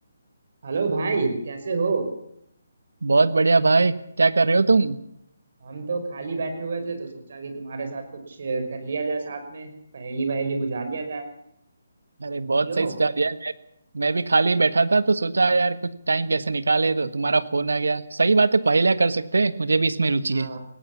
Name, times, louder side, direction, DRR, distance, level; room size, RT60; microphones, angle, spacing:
voice 1, 0.6-2.1 5.6-11.2 12.4-12.9 20.3-20.6, right 4 dB, 60° right, 7 dB, 5.6 m, -29 dB
voice 2, 3.0-5.0 12.2-13.5 13.9-20.5, right 3 dB, 80° right, 14 dB, 1.4 m, -21 dB
20.5 x 17.0 x 7.4 m, 0.75 s
figure-of-eight pair, 150°, 0 cm